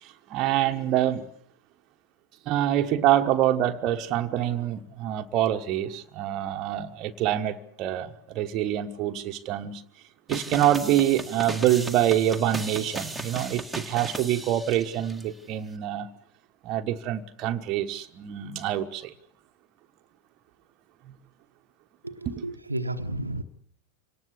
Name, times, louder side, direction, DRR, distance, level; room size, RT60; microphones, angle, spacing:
voice 1, 0.0-1.2 2.5-9.8 10.3-16.1 16.6-19.1 22.2-22.4, right 12 dB, 35° right, 1.3 m, -26 dB
sound 1, 10.3-15.2, right 1 dB, ahead, 2.0 m, -37 dB
voice 2, 22.4-23.4, right 1 dB, 85° right, 1.1 m, -31 dB
26.5 x 18.5 x 8.2 m
figure-of-eight pair, 90°, 0 cm